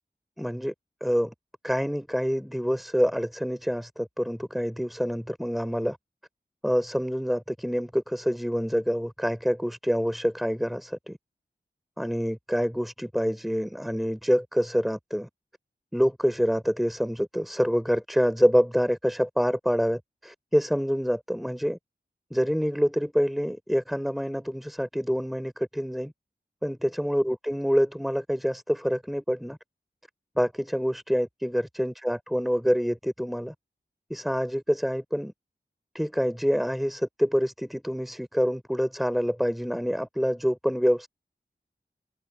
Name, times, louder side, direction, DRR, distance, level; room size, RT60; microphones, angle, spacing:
voice 1, 0.4-0.7 1.0-1.3 1.6-6.0 6.6-11.2 12.0-15.3 15.9-21.8 22.3-26.1 26.6-29.6 30.4-33.5 34.1-35.3 35.9-41.1, equal, ahead, 5.4 m, -26 dB
cardioid pair, 40°, 19 cm